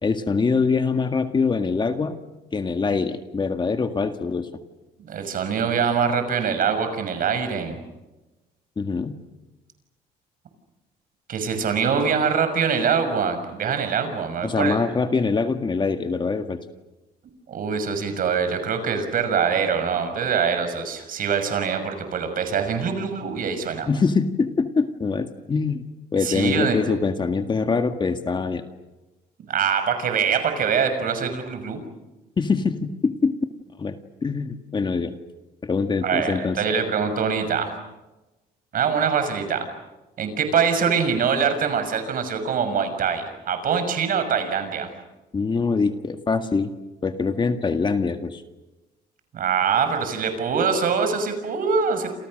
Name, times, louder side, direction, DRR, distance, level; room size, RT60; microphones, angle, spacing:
voice 1, 0.0-2.2 2.5-4.5 8.8-9.1 14.4-16.6 23.8-25.9 26.1-28.6 32.4-33.3 33.8-34.0 34.2-35.1 35.6-36.6 45.3-46.7 47.0-48.4, left 4 dB, 25° left, 7 dB, 1.8 m, -23 dB
voice 2, 5.0-7.8 11.3-14.8 17.5-23.9 26.2-26.8 29.5-31.8 36.0-37.7 38.7-39.7 40.2-44.9 49.3-52.1, right 6 dB, 55° right, 8 dB, 6.2 m, -24 dB
28.5 x 28.5 x 6.6 m, 1.1 s
cardioid pair, 110°, 17 cm